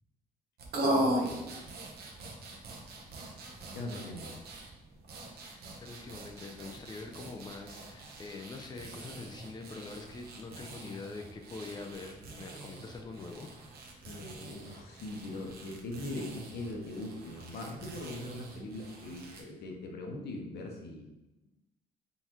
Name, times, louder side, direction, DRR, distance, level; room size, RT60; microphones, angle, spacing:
sound 1, 0.6-19.4, right 1 dB, 70° right, 1.0 m, -40 dB
voice 1, 0.8-1.4 3.7-4.3 14.0-21.1, left 2 dB, 75° left, 1 dB, 1.0 m, -41 dB
voice 2, 5.8-13.5, left 3 dB, 25° left, 3 dB, 0.5 m, -44 dB
4.0 x 3.9 x 3.0 m, 0.97 s
cardioid pair, 100°, 17 cm